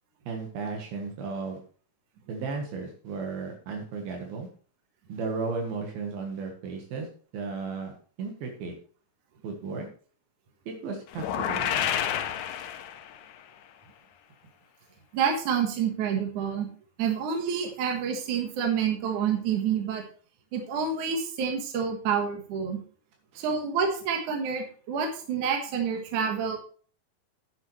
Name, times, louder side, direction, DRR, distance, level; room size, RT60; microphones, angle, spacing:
voice 1, 0.3-1.6 2.3-4.5 5.1-7.1 7.3-8.7 9.4-9.9 10.7-11.9 23.3-23.5, right 4 dB, 75° right, 2 dB, 3.4 m, -35 dB
sound 1, 11.1-13.3, left 10 dB, 75° left, 1.9 m, -29 dB
voice 2, 15.1-16.7 17.0-20.0 20.5-22.8 23.4-26.6, right 7 dB, 60° right, 2 dB, 2.8 m, -28 dB
10.5 x 9.8 x 3.3 m, 0.43 s
omnidirectional pair, 4.3 m